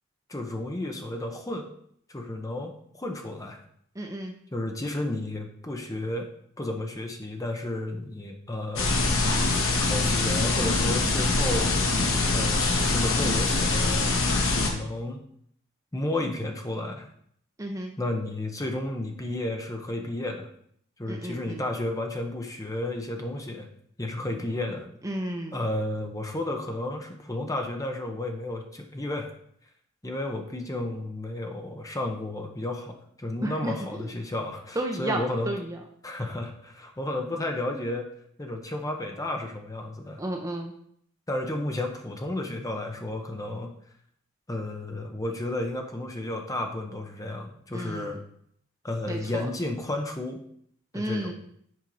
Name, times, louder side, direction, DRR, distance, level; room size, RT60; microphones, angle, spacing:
voice 1, 0.3-1.7 2.1-3.6 4.5-6.3 6.6-8.9 9.8-11.7 12.3-14.1 14.4-15.2 15.9-17.1 18.0-20.5 21.0-23.7 24.0-24.9 25.5-29.3 30.0-35.6 36.0-38.1 38.4-40.2 41.3-43.7 44.5-48.2 48.8-50.4 50.9-51.3, left 1 dB, 15° left, 4 dB, 0.8 m, -32 dB
voice 2, 4.0-4.3 17.6-17.9 21.1-21.6 25.0-25.6 33.4-34.1 34.8-35.8 40.2-40.7 47.7-48.2 49.1-49.5 50.9-51.3, right 1 dB, 15° right, 3 dB, 0.6 m, -32 dB
sound 1, 8.8-14.7, left 3 dB, 65° left, 1.3 m, -24 dB
7.6 x 4.5 x 5.3 m, 0.66 s
head